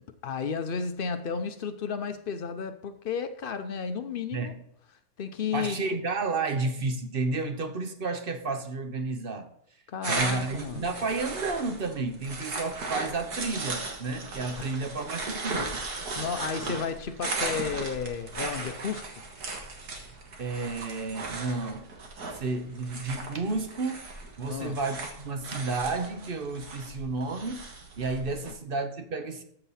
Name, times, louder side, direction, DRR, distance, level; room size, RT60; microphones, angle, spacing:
voice 1, 0.2-4.5 5.2-5.8 9.9-10.8 16.2-19.1 24.5-24.8, left 6 dB, 55° left, 0.6 m, -32 dB
voice 2, 4.3-4.6 5.5-9.5 10.0-15.8 16.6-16.8 20.4-21.9 22.3-24.1 24.4-27.7 28.0-29.4, right 3 dB, 40° right, 0.9 m, -31 dB
sound 1, 10.0-28.5, right 3 dB, 75° right, 2.0 m, -37 dB
13.5 x 5.5 x 4.2 m
omnidirectional pair, 1.7 m